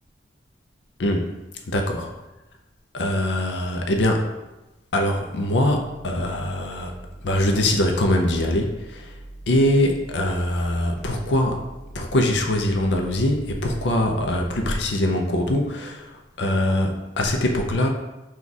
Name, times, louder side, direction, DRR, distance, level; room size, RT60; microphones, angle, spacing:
voice 1, 1.7-2.1 2.9-4.3 4.9-6.9 7.2-9.1 9.5-11.6 11.9-16.1 16.4-17.9, left 1 dB, 75° left, 3 dB, 0.5 m, -22 dB
sound 1, 5.6-14.7, right 1 dB, 30° right, 0.5 m, -42 dB
4.0 x 2.4 x 4.6 m, 1.0 s
head